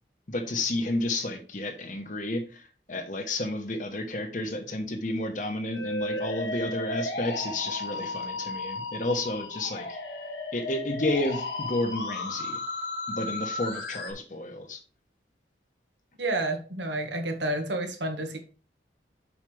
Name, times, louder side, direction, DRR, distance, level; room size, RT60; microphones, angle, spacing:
voice 1, 0.3-10.0 10.5-12.6 13.1-14.8, left 2 dB, 45° left, 5 dB, 1.2 m, -31 dB
Musical instrument, 5.7-14.1, left 2 dB, 80° left, 1.6 m, -34 dB
voice 2, 16.2-18.4, right 2 dB, 85° right, 4 dB, 1.6 m, -30 dB
7.2 x 5.7 x 3.4 m, 0.38 s
head